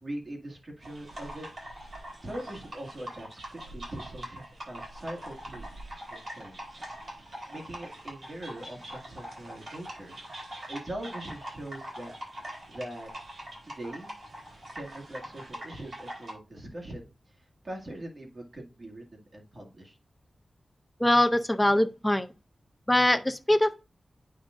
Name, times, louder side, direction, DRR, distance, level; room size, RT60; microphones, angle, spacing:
voice 1, 0.0-1.5 2.2-6.9 7.5-10.2 10.7-12.1 12.7-13.1 13.6-14.1 14.7-20.0, right 1 dB, 35° right, 2.0 m, -42 dB
sound 1, 0.8-16.3, right 1 dB, 55° right, 4.0 m, -43 dB
voice 2, 21.0-22.3 22.9-23.8, left 1 dB, 10° left, 0.5 m, -23 dB
8.7 x 5.0 x 2.5 m
wide cardioid pair, 110°, 0 cm